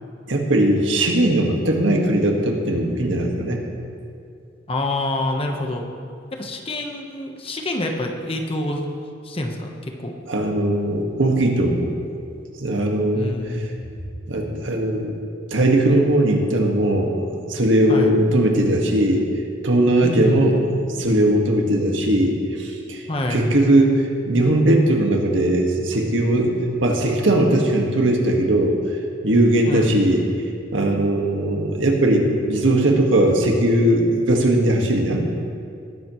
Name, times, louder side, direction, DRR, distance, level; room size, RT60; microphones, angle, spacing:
voice 1, 0.3-3.6 10.3-11.9 12.6-13.6 14.3-15.1 15.5-17.2 17.5-19.2 19.6-23.0 23.3-28.8 29.2-30.2 30.7-35.3, right 1 dB, 90° right, 1 dB, 1.7 m, -19 dB
voice 2, 4.7-5.8 6.3-8.9 9.2-10.1 13.1-13.7 17.9-18.1 20.0-20.5 23.1-23.5 29.6-30.0, left 1 dB, 30° left, 2 dB, 1.2 m, -27 dB
19.5 x 10.5 x 3.2 m, 2.4 s
head